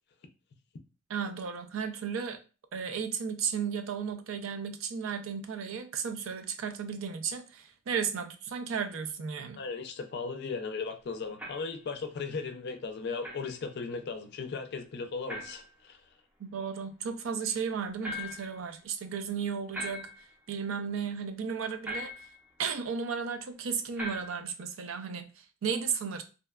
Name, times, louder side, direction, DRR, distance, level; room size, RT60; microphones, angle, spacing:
voice 1, 1.1-2.4 2.7-9.6 16.4-20.1 20.5-22.3 22.6-26.2, right 6 dB, 80° right, 0.4 m, -34 dB
voice 2, 9.5-16.0, left 4 dB, 55° left, 0.4 m, -37 dB
sound 1, 11.4-11.7 13.2-13.5 15.3-15.7 18.0-18.6 19.7-20.3 21.8-22.4 24.0-24.5, left 1 dB, 10° right, 0.5 m, -40 dB
2.7 x 2.1 x 2.2 m
head